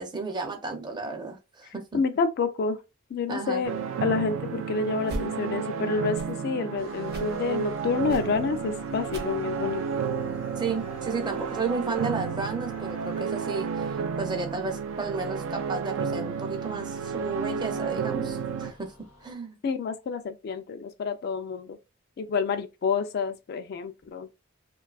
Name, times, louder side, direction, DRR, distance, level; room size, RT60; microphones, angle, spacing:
voice 1, 0.0-1.8 3.3-3.6 10.6-13.9 14.2-18.9 19.2-19.6, right 4 dB, 20° right, 0.4 m, -33 dB
voice 2, 1.6-2.8 3.1-9.8 19.6-21.8 22.2-24.3, left 5 dB, 55° left, 0.3 m, -29 dB
sound 1, 3.6-18.7, right 6 dB, 85° right, 0.3 m, -32 dB
sound 2, 5.0-5.3 6.0-6.4 7.0-7.4 8.0-8.4 9.0-9.4 10.0-10.1, right 1 dB, 55° right, 0.7 m, -38 dB
sound 3, 6.8-19.3, left 2 dB, 85° left, 0.8 m, -49 dB
2.6 x 2.3 x 2.3 m
head